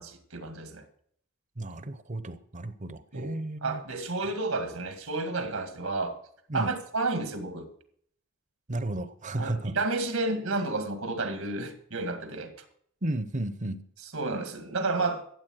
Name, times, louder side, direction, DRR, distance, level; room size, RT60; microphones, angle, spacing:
voice 1, 0.3-0.8 3.1-6.2 6.5-7.7 9.4-12.5 14.1-15.3, right 3 dB, 80° right, 1.9 m, -31 dB
voice 2, 1.6-3.8 6.5-6.7 8.7-9.8 13.0-13.8, right 1 dB, 35° right, 0.9 m, -33 dB
14.0 x 8.2 x 6.3 m
head